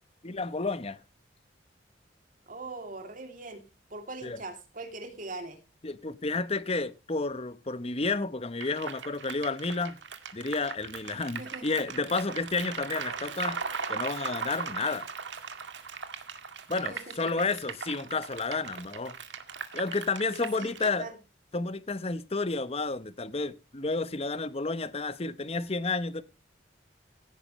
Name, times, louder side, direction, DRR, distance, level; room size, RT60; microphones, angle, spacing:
voice 1, 0.2-1.0 4.2-4.4 5.8-10.0 10.3-13.6 13.9-15.1 16.7-19.1 19.7-21.1 21.5-26.2, left 3 dB, 35° left, 1.0 m, -31 dB
voice 2, 2.5-5.6 11.4-11.7 16.8-17.3 17.7-17.8 20.3-21.2, right 3 dB, 50° right, 3.0 m, -42 dB
sound 1, 8.6-20.9, right 5 dB, 85° right, 2.0 m, -38 dB
17.5 x 9.5 x 3.2 m
head